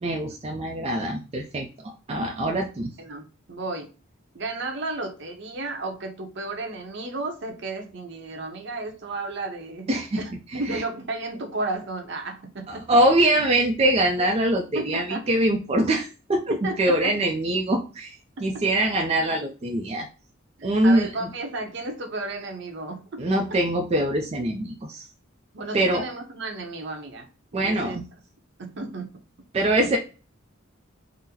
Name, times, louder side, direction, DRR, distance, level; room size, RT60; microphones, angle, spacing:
voice 1, 0.0-2.9 9.9-10.2 10.5-10.8 12.7-18.2 18.4-20.1 20.6-21.3 23.2-25.1 25.7-26.1 27.5-28.1 29.5-30.0, right 1 dB, 30° right, 1 dB, 0.4 m, -23 dB
voice 2, 3.0-3.9 4.3-12.9 14.7-15.3 16.5-17.2 20.6-23.2 25.5-28.0 28.6-29.2 29.8-29.9, right 2 dB, 60° right, 4 dB, 0.7 m, -33 dB
3.7 x 2.0 x 2.8 m, 0.34 s
head